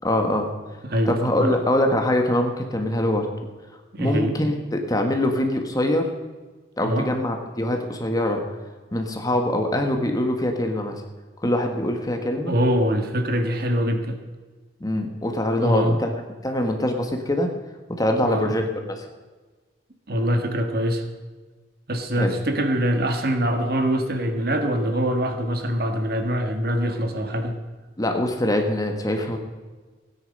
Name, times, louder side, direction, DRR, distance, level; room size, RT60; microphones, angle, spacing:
voice 1, 0.0-0.5 1.0-3.3 4.0-6.1 6.8-8.4 8.9-11.0 11.4-12.5 14.8-16.1 16.4-17.5 17.9-19.1 22.1-22.3 28.0-29.4, left 1 dB, 20° left, 4 dB, 1.3 m, -23 dB
voice 2, 0.8-1.6 3.9-4.3 6.8-7.1 12.1-14.2 15.6-16.0 18.3-18.5 20.1-21.0 21.9-27.6, equal, 55° right, 6 dB, 1.5 m, -24 dB
16.5 x 9.8 x 5.3 m, 1.3 s
head